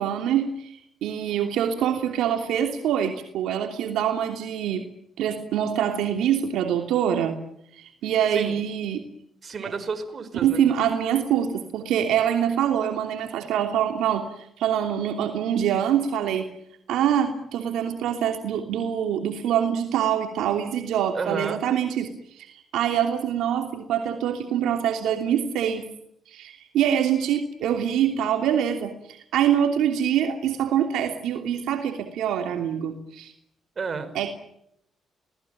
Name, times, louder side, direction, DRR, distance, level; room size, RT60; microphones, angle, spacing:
voice 1, 0.0-4.8 5.2-7.4 7.7-9.0 9.6-9.7 10.4-16.5 16.9-25.8 26.3-33.3 34.1-34.3, right 9 dB, 85° right, 4 dB, 3.0 m, -25 dB
voice 2, 9.4-10.7 21.1-21.6 33.8-34.1, right 5 dB, 40° right, 9 dB, 5.1 m, -31 dB
28.0 x 19.0 x 9.3 m, 0.77 s
cardioid pair, 90°, 0 cm